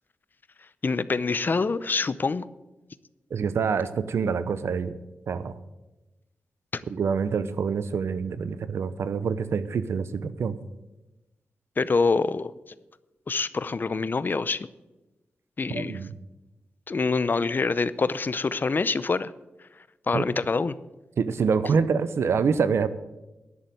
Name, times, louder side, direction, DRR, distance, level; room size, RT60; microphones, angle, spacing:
voice 1, 0.8-2.4 6.7-6.8 11.8-12.5 13.3-14.7 15.6-16.0 16.9-19.3 20.1-20.7, left 4 dB, 50° left, 16 dB, 0.6 m, -25 dB
voice 2, 3.3-4.9 5.3-5.5 6.9-10.6 15.7-16.1 20.1-20.2 21.2-22.9, right 6 dB, 75° right, 14 dB, 0.7 m, -26 dB
11.0 x 6.8 x 9.3 m, 1.0 s
cardioid pair, 50°, 4 cm